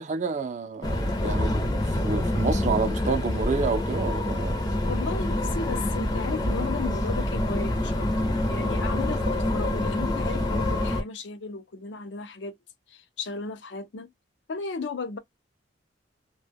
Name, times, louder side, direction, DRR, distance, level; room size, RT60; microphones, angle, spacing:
voice 1, 0.0-4.6, right 4 dB, 40° right, 0.5 m, -29 dB
sound 1, 0.8-11.0, left 1 dB, 20° left, 0.5 m, -26 dB
voice 2, 4.8-12.5 12.9-14.1 14.5-15.2, left 4 dB, 70° left, 0.5 m, -35 dB
2.2 x 2.1 x 3.4 m
head